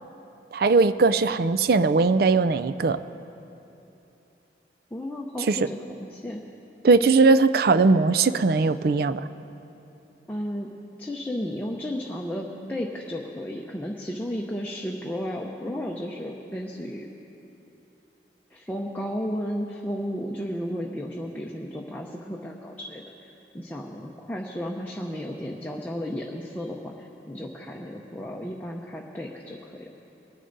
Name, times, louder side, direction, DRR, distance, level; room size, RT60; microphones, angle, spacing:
voice 1, 0.5-3.0 5.5-5.6 6.8-9.2, right 4 dB, 55° right, 13 dB, 0.4 m, -19 dB
voice 2, 4.9-6.4 10.3-10.7 11.0-17.1 18.5-23.0 23.5-29.9, equal, 10° left, -2 dB, 0.7 m, -33 dB
22.5 x 10.0 x 4.0 m, 2.9 s
head